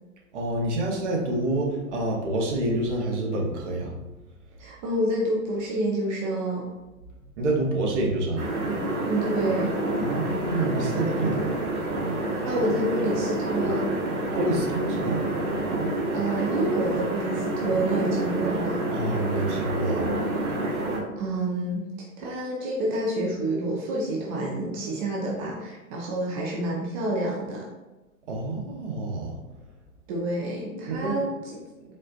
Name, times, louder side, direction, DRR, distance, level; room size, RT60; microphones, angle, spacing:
voice 1, 0.3-3.9 7.4-8.5 9.9-11.6 14.3-15.3 18.9-20.1 28.3-29.4 30.8-31.2, right 1 dB, 55° right, -1 dB, 1.0 m, -27 dB
voice 2, 4.6-6.7 9.1-9.8 12.4-13.8 16.1-18.9 21.2-21.9 22.2-27.7 30.1-31.3, right 1 dB, 25° right, -3 dB, 0.5 m, -28 dB
sound 1, 8.4-21.0, right 2 dB, 85° right, 1.2 m, -28 dB
4.2 x 2.4 x 2.4 m, 1.1 s
hypercardioid pair, 115°, 43 cm